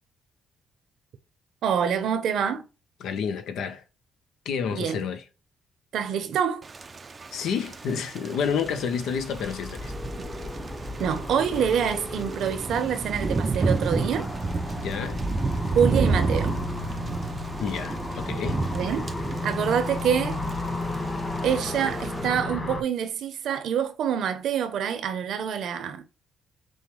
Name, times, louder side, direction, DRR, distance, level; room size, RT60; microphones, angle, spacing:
voice 1, 1.6-2.7 4.7-5.0 5.9-6.6 11.0-14.3 15.7-16.5 18.7-19.1 19.4-20.4 21.4-26.1, right 8 dB, 75° right, 0.8 m, -26 dB
voice 2, 3.0-3.8 4.4-5.2 7.3-9.9 14.8-15.2 17.6-18.7, left 6 dB, 80° left, 0.8 m, -29 dB
Thunder / Rain, 6.6-22.3, right 3 dB, 35° right, 0.4 m, -31 dB
sound 1, 9.1-22.8, left 2 dB, 25° left, 1.6 m, -34 dB
6.3 x 2.2 x 3.2 m
cardioid pair, 90°, 0 cm